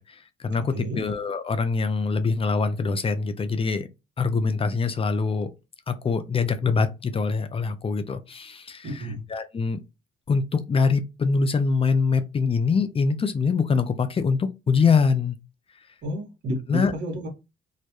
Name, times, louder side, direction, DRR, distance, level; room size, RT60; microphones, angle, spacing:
voice 1, 0.0-3.9 4.2-5.5 5.9-9.8 10.3-15.4 16.7-16.9, left 4 dB, 30° left, 0.4 m, -24 dB
voice 2, 8.8-9.2 16.0-17.3, equal, 65° right, 0.9 m, -30 dB
2.3 x 2.1 x 2.9 m
cardioid pair, 90°, 20 cm